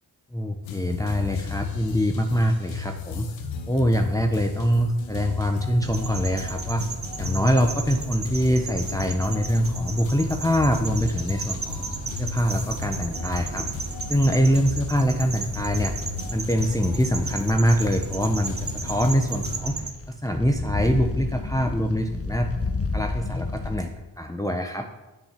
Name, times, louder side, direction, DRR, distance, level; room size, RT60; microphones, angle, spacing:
voice 1, 0.3-3.3 3.7-6.8 7.2-11.8 12.2-13.7 14.1-15.9 16.3-19.8 20.1-22.5 22.9-23.9 24.2-24.9, equal, 10° left, 3 dB, 1.2 m, -24 dB
sound 1, 0.6-19.6, left 6 dB, 90° left, 1.1 m, -35 dB
sound 2, 5.8-19.9, right 4 dB, 40° right, 1.5 m, -34 dB
sound 3, 15.4-23.8, left 3 dB, 30° left, 1.2 m, -33 dB
9.0 x 7.3 x 7.6 m, 1.0 s
cardioid pair, 50°, 45 cm